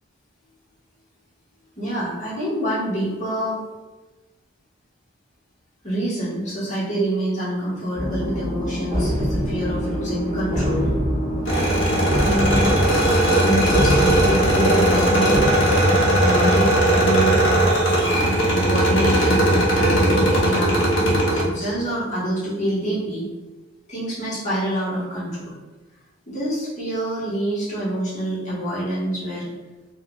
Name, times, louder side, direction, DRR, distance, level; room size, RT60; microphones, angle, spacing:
voice 1, 1.8-3.6 5.8-10.9 12.2-12.7 13.4-15.5 16.2-17.4 18.5-20.8 21.2-23.2 23.9-25.5 26.3-29.5, equal, 40° left, -8 dB, 1.3 m, -26 dB
sound 1, 7.9-15.5, equal, 15° right, 1.4 m, -25 dB
sound 2, 11.5-21.4, right 1 dB, 90° left, 1.0 m, -18 dB
4.3 x 2.5 x 2.3 m, 1.2 s
head